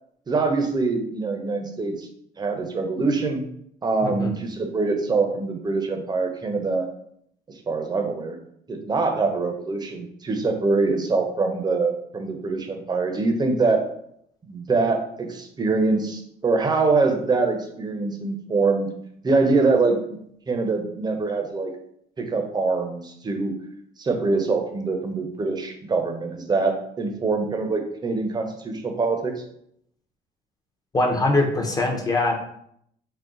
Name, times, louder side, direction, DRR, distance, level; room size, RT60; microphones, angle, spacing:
voice 1, 0.3-2.1 2.4-3.4 3.8-6.9 7.7-8.4 8.7-13.8 14.5-18.9 19.2-20.2 20.5-21.7 22.2-23.6 24.0-29.4, right 3 dB, 25° right, 4 dB, 0.6 m, -24 dB
voice 2, 4.0-4.4 30.9-32.3, left 2 dB, 20° left, 2 dB, 0.7 m, -22 dB
3.8 x 2.1 x 3.7 m, 0.70 s
cardioid pair, 110°, 17 cm